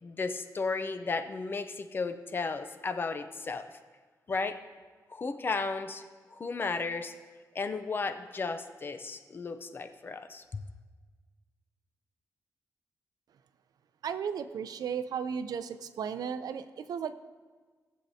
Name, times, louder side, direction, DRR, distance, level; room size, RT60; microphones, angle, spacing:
voice 1, 0.0-3.8 4.3-4.6 5.1-6.0 6.3-7.1 7.5-10.6, left 4 dB, 35° left, 8 dB, 0.6 m, -34 dB
voice 2, 14.0-17.2, right 7 dB, 85° right, 12 dB, 0.5 m, -35 dB
18.5 x 7.5 x 2.8 m, 1.4 s
wide cardioid pair, 150°, 6 cm